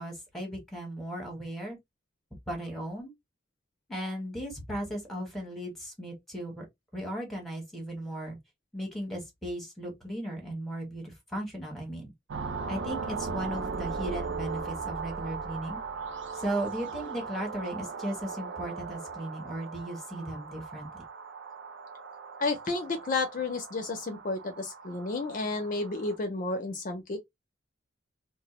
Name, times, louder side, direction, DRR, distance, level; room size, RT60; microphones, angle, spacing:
voice 1, 0.0-1.8 2.5-3.1 3.9-6.6 6.9-8.4 8.7-12.1 12.7-15.8 16.4-21.0, right 1 dB, ahead, 1.0 m, -36 dB
sound 1, 12.3-26.2, right 5 dB, 90° right, 0.5 m, -38 dB
voice 2, 22.4-27.2, left 3 dB, 45° left, 0.5 m, -31 dB
2.1 x 2.0 x 2.9 m
head